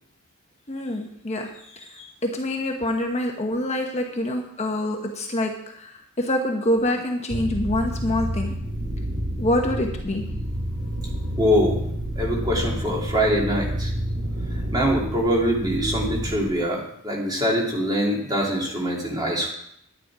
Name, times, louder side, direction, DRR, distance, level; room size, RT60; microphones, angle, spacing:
voice 1, 0.7-8.5 9.4-10.2, left 1 dB, 30° left, 2 dB, 1.1 m, -26 dB
sound 1, 7.3-16.5, equal, 65° right, 3.6 m, -29 dB
voice 2, 11.4-11.9 12.2-13.9 14.7-19.5, equal, 20° right, -2 dB, 2.8 m, -23 dB
10.5 x 10.0 x 4.8 m, 0.72 s
head